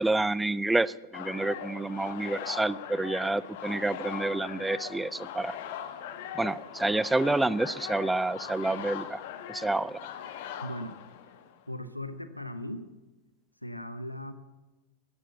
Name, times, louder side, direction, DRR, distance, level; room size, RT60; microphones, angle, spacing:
voice 1, 0.0-5.6 6.4-9.2 9.5-10.0, right 2 dB, 5° right, 20 dB, 0.4 m, -28 dB
sound 1, 1.1-11.6, left 9 dB, 50° left, 1.3 m, -40 dB
voice 2, 10.6-11.0 11.7-12.9 13.6-14.3, left 1 dB, 90° left, 12 dB, 0.8 m, -38 dB
14.0 x 11.5 x 8.3 m, 1.1 s
figure-of-eight pair, 90°, 0 cm